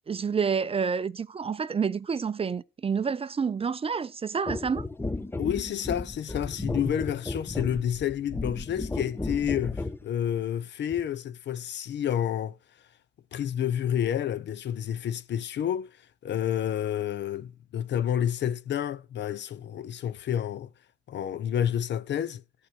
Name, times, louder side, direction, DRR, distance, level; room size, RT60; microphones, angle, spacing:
voice 1, 0.1-4.9, right 6 dB, 30° right, 0.5 m, -28 dB
sound 1, 4.5-10.0 10.9-11.1, left 2 dB, 10° left, 0.7 m, -34 dB
voice 2, 5.4-12.6 13.3-15.9 16.2-20.7 21.1-22.4, left 10 dB, 65° left, 0.8 m, -29 dB
14.0 x 4.9 x 7.7 m
cardioid pair, 90°, 20 cm